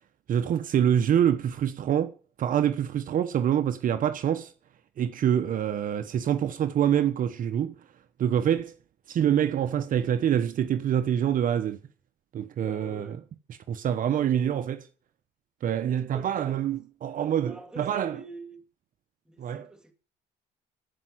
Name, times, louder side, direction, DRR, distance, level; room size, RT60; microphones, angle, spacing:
voice 1, 0.3-2.1 2.4-4.5 5.0-7.8 8.2-8.7 9.1-11.8 12.3-13.2 13.7-14.9 15.6-18.2 19.4-19.6, right 9 dB, 55° right, 1.0 m, -26 dB
voice 2, 12.6-13.2 16.1-16.6 17.4-18.6 19.2-19.9, right 2 dB, 5° right, 2.8 m, -45 dB
14.0 x 5.6 x 9.5 m
cardioid pair, 110°, 17 cm